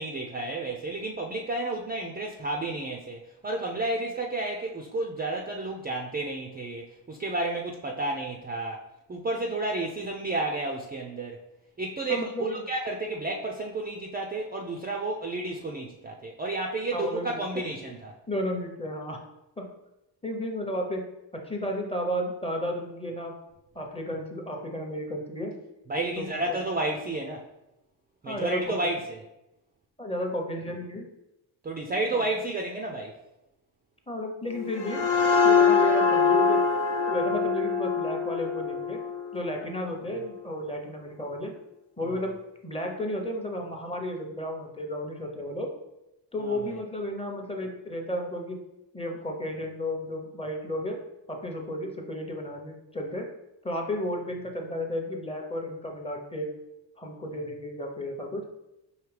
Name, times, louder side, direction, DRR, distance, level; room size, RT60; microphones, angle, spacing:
voice 1, 0.0-8.8 9.1-11.4 11.8-18.1 25.9-27.5 28.2-29.2 31.6-33.2 42.1-42.2 46.4-46.8, right 2 dB, 20° right, 1 dB, 0.4 m, -31 dB
voice 2, 12.1-12.6 16.9-17.6 18.3-19.2 19.6-19.7 20.2-23.3 23.7-25.6 26.2-26.6 28.2-28.9 30.0-31.1 32.1-32.2 34.1-35.1 35.4-36.6 37.1-39.0 39.3-41.5 42.0-42.4 42.6-45.7 46.3-48.6 48.9-51.0 51.3-53.3 53.6-56.5 57.0-58.5, equal, 15° left, 2 dB, 0.7 m, -33 dB
sound 1, 34.5-40.0, left 5 dB, 60° left, 0.8 m, -24 dB
4.8 x 2.8 x 3.2 m, 0.92 s
cardioid pair, 80°, 46 cm